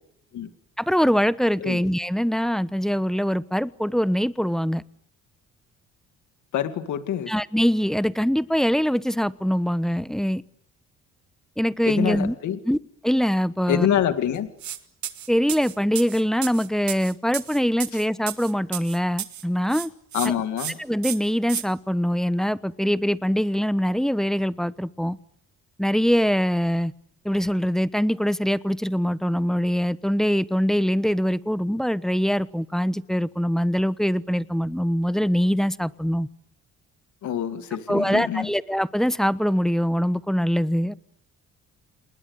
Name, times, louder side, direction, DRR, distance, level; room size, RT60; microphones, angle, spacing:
voice 1, 0.8-4.8 7.3-10.4 11.6-12.3 12.6-12.8 13.0-13.9 15.3-19.9 20.2-20.3 20.8-25.2 25.8-26.9 27.2-36.3 37.9-40.9, equal, ahead, 16 dB, 1.0 m, -23 dB
voice 2, 6.5-7.3 11.9-12.6 13.7-14.5 20.1-20.8 37.2-38.5, left 10 dB, 75° left, 9 dB, 2.1 m, -26 dB
sound 1, 14.6-14.8 15.0-19.4 19.7-20.3 20.6-20.7 21.0-21.6, right 11 dB, 70° right, 2.2 m, -32 dB
28.5 x 20.5 x 9.6 m, 0.73 s
cardioid pair, 90°, 30 cm